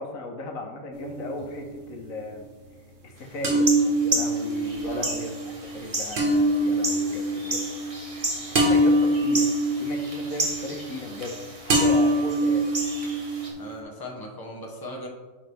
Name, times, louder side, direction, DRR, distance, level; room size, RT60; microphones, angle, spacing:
voice 1, 0.0-2.4 3.0-7.7 8.5-9.5 9.8-12.7, left 3 dB, 80° left, 2 dB, 1.4 m, -36 dB
sound 1, 0.9-1.8 3.4-11.4 11.7-13.8, right 1 dB, 65° right, 1.5 m, -24 dB
sound 2, 3.5-13.5, right 2 dB, 25° right, 1.1 m, -33 dB
voice 2, 4.8-5.1 13.6-15.1, equal, 15° left, -1 dB, 1.1 m, -38 dB
10.5 x 3.9 x 3.4 m, 1.3 s
omnidirectional pair, 1.4 m